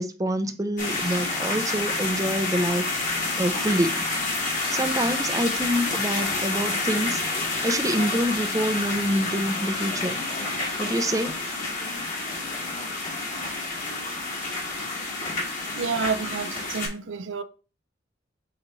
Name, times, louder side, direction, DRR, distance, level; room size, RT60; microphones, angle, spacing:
voice 1, 0.0-4.1 4.7-10.2 10.8-11.4, equal, 15° right, 0.7 m, -27 dB
sound 1, 0.8-16.9, left 3 dB, 45° left, 2.3 m, -29 dB
voice 2, 15.7-17.4, right 5 dB, 75° right, 0.6 m, -29 dB
8.3 x 4.0 x 3.2 m
head